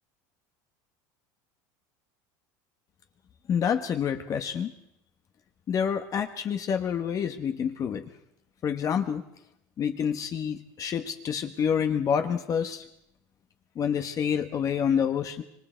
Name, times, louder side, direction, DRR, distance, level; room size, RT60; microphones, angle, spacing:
voice 1, 3.5-4.7 5.7-8.0 8.6-9.2 9.8-12.8 13.7-15.4, left 7 dB, 40° left, 6 dB, 1.5 m, -28 dB
26.0 x 22.5 x 4.6 m, 0.77 s
supercardioid pair, 115°, 9 cm